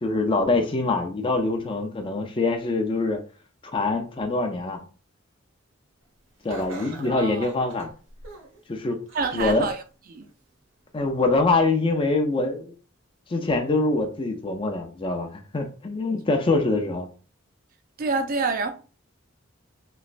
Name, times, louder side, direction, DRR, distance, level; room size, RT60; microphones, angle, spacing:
voice 1, 0.0-3.2 3.7-4.8 6.4-7.9 8.7-9.0 9.3-9.7 10.9-12.7 13.3-17.1, left 3 dB, 25° left, 0.4 m, -24 dB
Laughter, 6.5-8.6 9.1-9.7 10.2-10.3 11.3-11.4, right 2 dB, 70° right, 0.9 m, -42 dB
voice 2, 7.1-7.5 9.1-9.8 10.1-10.3 18.0-18.7, right 4 dB, 45° right, 0.4 m, -27 dB
3.1 x 3.0 x 2.5 m
head